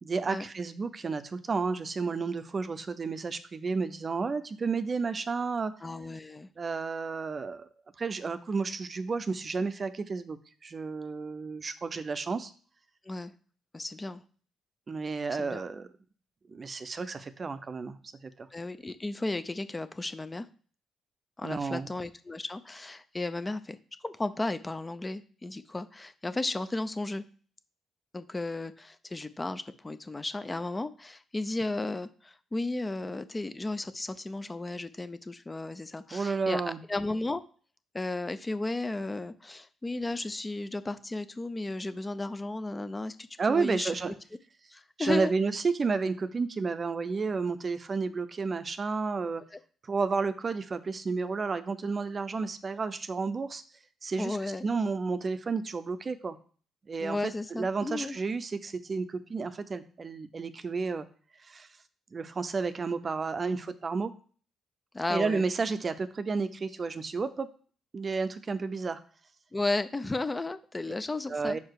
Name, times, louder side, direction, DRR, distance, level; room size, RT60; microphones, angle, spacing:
voice 1, 0.0-5.7 6.6-7.7 8.0-12.5 14.9-15.9 16.5-18.0 18.2-18.5 21.4-21.9 36.1-36.8 43.4-44.1 45.0-49.4 49.8-53.6 54.0-56.4 56.9-61.0 61.4-61.7 62.1-64.1 65.1-67.5 67.9-69.0 71.3-71.6, right 4 dB, 35° right, 12 dB, 0.6 m, -31 dB
voice 2, 5.8-6.5 13.0-13.3 13.7-14.2 15.4-15.6 18.5-20.5 21.4-23.8 24.0-27.2 28.1-36.6 36.9-37.4 37.9-43.9 44.7-45.3 49.5-49.6 54.2-54.6 57.0-58.2 64.9-65.4 69.5-71.6, left 2 dB, 20° left, 12 dB, 0.5 m, -34 dB
5.3 x 4.8 x 4.7 m, 0.42 s
cardioid pair, 90°, 0 cm